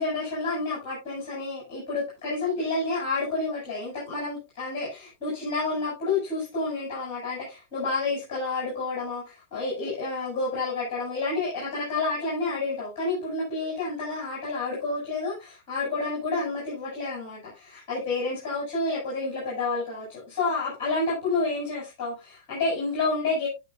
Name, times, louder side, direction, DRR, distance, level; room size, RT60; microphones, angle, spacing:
voice 1, 0.0-23.5, left 3 dB, 45° left, -5 dB, 7.5 m, -29 dB
18.0 x 6.3 x 2.5 m, 0.25 s
figure-of-eight pair, 100°, 0 cm